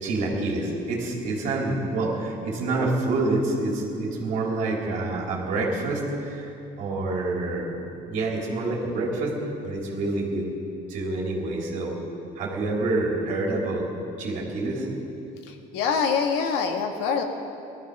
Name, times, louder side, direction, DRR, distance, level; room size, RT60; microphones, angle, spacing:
voice 1, 0.0-6.5 6.8-7.8 8.1-9.4 9.6-10.5 10.9-12.0 12.4-13.9 14.2-14.9, right 2 dB, 50° right, -2 dB, 3.4 m, -27 dB
voice 2, 15.7-17.2, left 6 dB, 85° left, 3 dB, 1.8 m, -24 dB
19.0 x 13.5 x 5.5 m, 2.7 s
cardioid pair, 180°, 17 cm